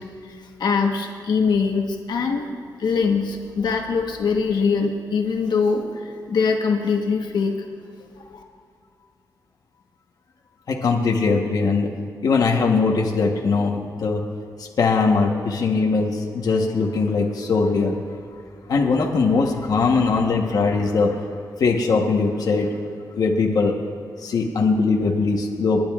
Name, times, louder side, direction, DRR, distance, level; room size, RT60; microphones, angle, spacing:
voice 1, 0.0-2.5 2.8-7.5 8.2-8.4, left 5 dB, 85° left, 2 dB, 1.1 m, -23 dB
voice 2, 10.7-11.9 12.2-14.2 14.6-18.0 18.7-21.3 21.6-22.8 23.1-23.7 24.2-25.8, left 4 dB, 65° left, 0 dB, 1.1 m, -20 dB
28.5 x 10.5 x 2.4 m, 2.3 s
wide cardioid pair, 175°, 7 cm